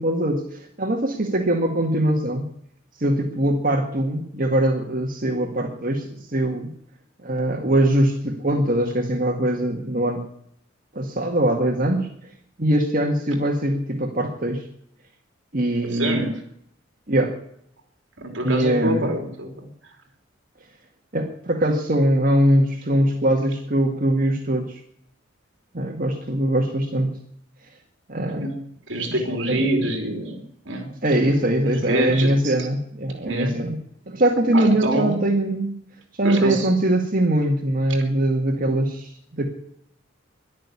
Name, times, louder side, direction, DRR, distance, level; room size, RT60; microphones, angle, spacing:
voice 1, 0.0-2.5 3.0-6.7 7.2-10.2 10.9-12.1 12.6-14.7 15.5-16.3 17.1-17.4 18.4-19.1 21.1-24.8 25.7-27.1 28.1-28.5 29.1-29.6 31.0-33.8 34.1-35.7 36.1-39.5, right 1 dB, 45° right, 2 dB, 1.9 m, -22 dB
voice 2, 15.8-16.4 18.2-19.7 28.2-30.9 31.6-32.5 33.2-33.5 34.5-35.2 36.2-36.7, right 1 dB, 65° right, 3 dB, 3.1 m, -26 dB
13.0 x 11.5 x 9.7 m, 0.71 s
head